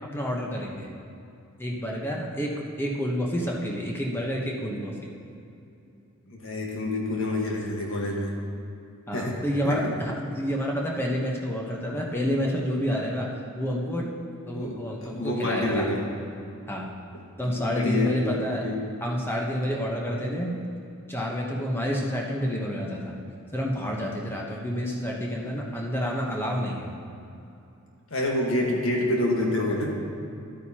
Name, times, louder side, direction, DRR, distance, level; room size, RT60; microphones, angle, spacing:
voice 1, 0.1-1.0 1.6-5.1 9.1-13.3 13.6-14.1 14.5-16.1 16.7-16.9 17.4-18.6 19.0-20.5 21.1-26.9, equal, 10° left, -1 dB, 0.9 m, -29 dB
voice 2, 6.3-8.3 9.1-9.4 9.6-9.9 14.5-14.7 15.0-16.0 17.4-18.8 28.1-30.1, left 1 dB, 60° left, -1 dB, 1.5 m, -27 dB
11.5 x 9.1 x 2.9 m, 2.7 s
head